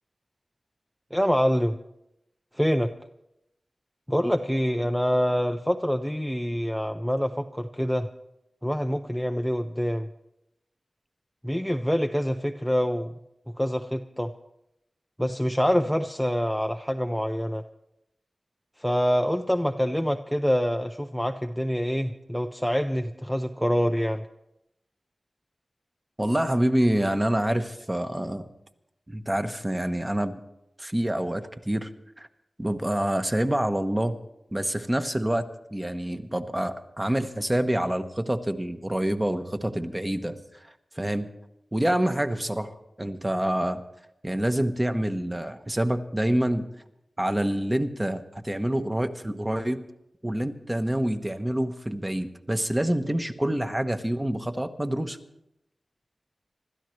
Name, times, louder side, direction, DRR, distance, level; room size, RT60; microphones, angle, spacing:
voice 1, 1.1-1.8 2.5-2.9 4.1-8.1 8.6-10.1 11.4-13.1 13.6-14.3 15.2-17.6 18.8-24.3, equal, ahead, 5 dB, 0.5 m, -26 dB
voice 2, 26.2-28.5 29.1-30.4 30.8-31.9 32.2-32.3 32.6-34.2 34.5-41.3 41.7-43.8 44.2-46.6 47.2-49.8 50.2-55.2, right 1 dB, 15° right, 7 dB, 1.0 m, -27 dB
26.0 x 13.5 x 3.2 m, 0.84 s
wide cardioid pair, 105°, 0 cm